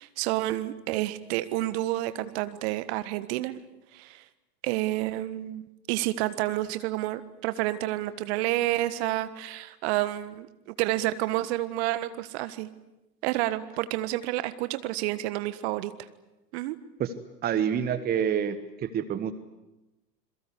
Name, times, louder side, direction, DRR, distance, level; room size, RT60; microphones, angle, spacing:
voice 1, 0.0-3.6 3.9-4.2 4.6-5.6 5.9-10.5 10.8-12.7 13.2-15.9 16.5-16.8, right 16 dB, 40° right, 13 dB, 1.5 m, -29 dB
voice 2, 17.4-19.3, right 8 dB, 20° right, 13 dB, 1.2 m, -27 dB
27.0 x 22.5 x 8.2 m, 1.0 s
figure-of-eight pair, 100°, 48 cm